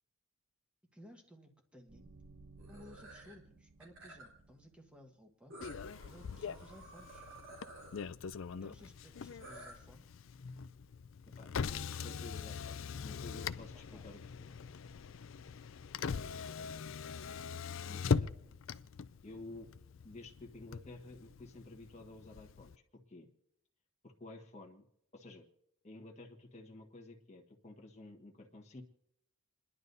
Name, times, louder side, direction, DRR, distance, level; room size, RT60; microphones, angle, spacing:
voice 1, 0.9-2.1 2.7-5.5 6.0-7.3 8.6-10.1 13.9-14.1 16.5-16.7, equal, 5° right, 2 dB, 1.4 m, -58 dB
sound 1, 1.9-5.0, right 3 dB, 45° right, 0.6 m, -59 dB
sound 2, 2.6-3.3 3.8-4.4 5.5-8.0 9.4-9.7, right 1 dB, 65° right, 3.4 m, -53 dB
Motor vehicle (road), 5.6-22.8, left 5 dB, 65° left, 0.4 m, -41 dB
voice 2, 11.4-14.5 17.9-18.3 19.2-19.7 20.0-23.3 24.0-24.8 25.1-25.4 25.8-28.8, left 2 dB, 30° left, 1 dB, 1.4 m, -52 dB
29.5 x 11.0 x 2.7 m, 0.77 s
head